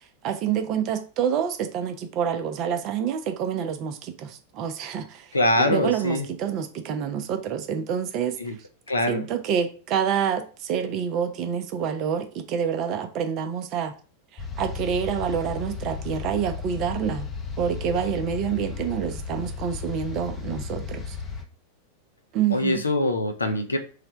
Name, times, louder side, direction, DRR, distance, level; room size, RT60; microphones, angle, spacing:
voice 1, 0.2-5.3 5.6-8.4 9.1-13.9 14.3-17.3 17.6-21.2 22.3-22.8, right 8 dB, 40° right, 0.5 m, -27 dB
voice 2, 5.3-6.3 8.4-8.5 8.9-9.3 22.5-23.8, left 1 dB, 80° left, 0.5 m, -23 dB
sound 1, 14.4-21.4, left 5 dB, 15° left, 0.6 m, -34 dB
3.3 x 2.1 x 3.8 m
figure-of-eight pair, 90°, 0 cm